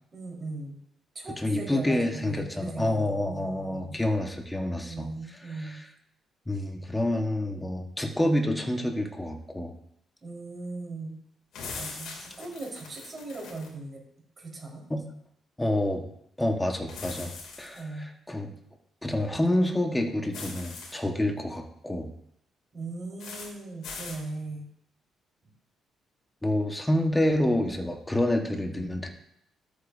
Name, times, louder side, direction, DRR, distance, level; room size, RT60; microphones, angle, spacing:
voice 1, 0.1-0.8 1.1-4.0 4.8-5.8 10.2-11.2 11.7-14.0 14.4-14.8 17.7-18.1 22.7-24.7, right 2 dB, 40° right, -3 dB, 4.3 m, -38 dB
voice 2, 1.4-5.9 6.5-9.7 14.9-15.1 15.6-16.0 16.4-17.3 17.6-18.5 19.0-22.1 26.4-29.1, left 1 dB, 10° left, 3 dB, 1.4 m, -28 dB
sound 1, 11.5-13.7 16.9-17.8 20.3-20.9 23.2-23.5 23.8-24.2, left 4 dB, 75° left, 2.7 m, -41 dB
13.0 x 8.3 x 2.7 m, 0.74 s
cardioid pair, 90°, 0 cm